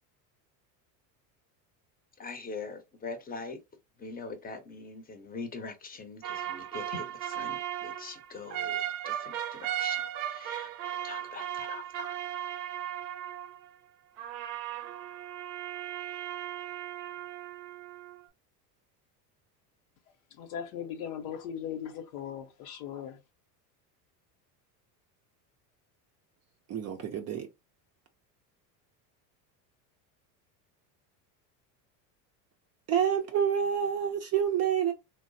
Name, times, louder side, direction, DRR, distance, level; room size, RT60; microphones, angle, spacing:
voice 1, 2.2-3.6 4.0-10.0 10.3-10.7 11.0-12.2, left 4 dB, 20° left, 0.7 m, -42 dB
sound 1, 6.2-13.8 14.2-18.2, right 11 dB, 80° right, 0.6 m, -36 dB
voice 2, 20.3-23.2, left 8 dB, 70° left, 0.8 m, -38 dB
voice 3, 26.7-27.5 32.9-34.9, right 8 dB, 35° right, 0.4 m, -28 dB
3.0 x 2.0 x 2.6 m
supercardioid pair, 100°, 49 cm